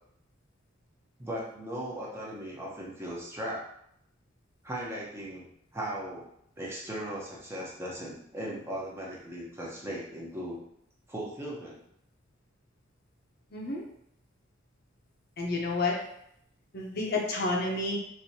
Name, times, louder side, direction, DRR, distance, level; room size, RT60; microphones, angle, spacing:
voice 1, 1.2-3.7 4.6-5.5 5.7-6.3 6.6-10.6 11.1-11.8, right 1 dB, 15° right, -4 dB, 0.7 m, -37 dB
voice 2, 13.5-13.8 15.4-15.9 16.7-18.0, left 2 dB, 50° left, -1 dB, 0.7 m, -30 dB
4.4 x 2.7 x 2.7 m, 0.74 s
head